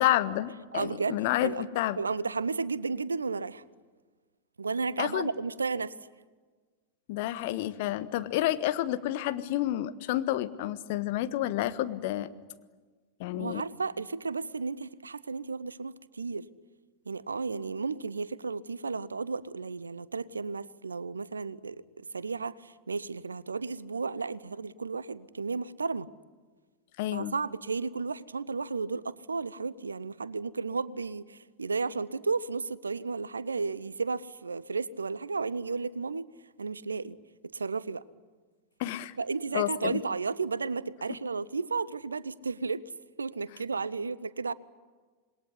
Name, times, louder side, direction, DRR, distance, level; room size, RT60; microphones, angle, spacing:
voice 1, 0.0-2.0 5.0-5.3 7.1-12.3 13.2-13.6 27.0-27.3 38.8-39.1 39.5-40.0, left 14 dB, 50° left, 1.3 m, -29 dB
voice 2, 0.7-1.6 2.0-3.6 4.6-5.9 13.3-16.5 17.1-26.1 27.1-36.3 36.6-37.2 37.5-38.0 39.2-42.9 43.2-44.5, right 4 dB, 75° right, 0.8 m, -33 dB
27.0 x 21.0 x 9.9 m
figure-of-eight pair, 90°, 0 cm